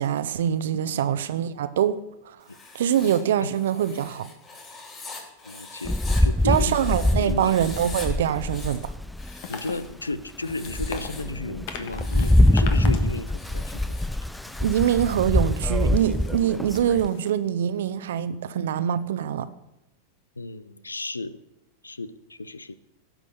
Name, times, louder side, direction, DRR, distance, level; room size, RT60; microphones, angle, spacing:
voice 1, 0.0-2.0 2.3-2.4 2.7-4.3 6.4-8.9 14.6-19.5, right 10 dB, 65° right, 0.8 m, -24 dB
voice 2, 0.8-1.3 3.4-3.5 5.4-6.9 7.2-7.6 9.5-14.0 20.4-21.4 21.8-22.8, left 2 dB, 90° left, 0.6 m, -33 dB
Writing, 2.4-7.1 7.4-8.1 8.4-9.9 10.4-11.3 11.8-12.6 13.3-15.2, left 3 dB, 30° left, 4.0 m, -43 dB
Rain, 5.8-9.4 9.9-10.0 10.5-17.1, left 1 dB, 5° left, 0.3 m, -24 dB
sound 1, 9.4-17.3, left 6 dB, 55° left, 1.5 m, -42 dB
16.0 x 6.2 x 6.8 m
figure-of-eight pair, 95°, 0 cm